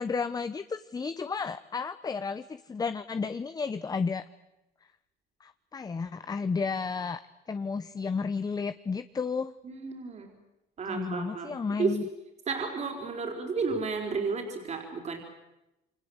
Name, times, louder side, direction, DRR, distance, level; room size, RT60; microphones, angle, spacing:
voice 1, 0.0-4.2 5.4-7.2 7.5-9.5 10.9-12.0, left 5 dB, 20° left, 12 dB, 0.9 m, -32 dB
voice 2, 9.6-10.3 10.8-12.0 12.5-15.2, right 4 dB, 40° right, 2 dB, 4.5 m, -32 dB
28.5 x 24.5 x 8.0 m, 0.95 s
cardioid pair, 110°, 17 cm